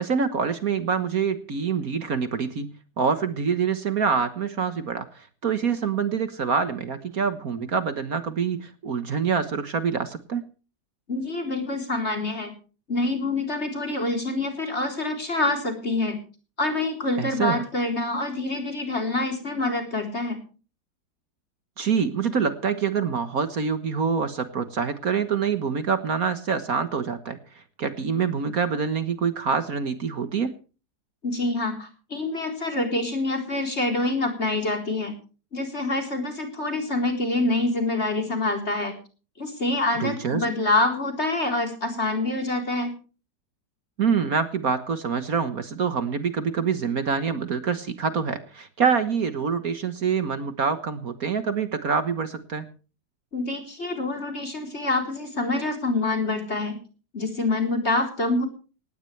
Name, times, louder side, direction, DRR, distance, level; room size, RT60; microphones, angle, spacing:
voice 1, 0.0-10.4 17.2-17.6 21.8-30.5 40.0-40.4 44.0-52.7, right 6 dB, 55° right, 10 dB, 1.7 m, -26 dB
voice 2, 11.1-12.5 12.9-16.2 16.6-20.4 31.2-35.1 35.5-38.9 39.4-42.9 53.3-56.8 57.1-58.5, left 2 dB, 35° left, 3 dB, 4.2 m, -26 dB
19.0 x 16.5 x 3.3 m, 0.36 s
omnidirectional pair, 1.9 m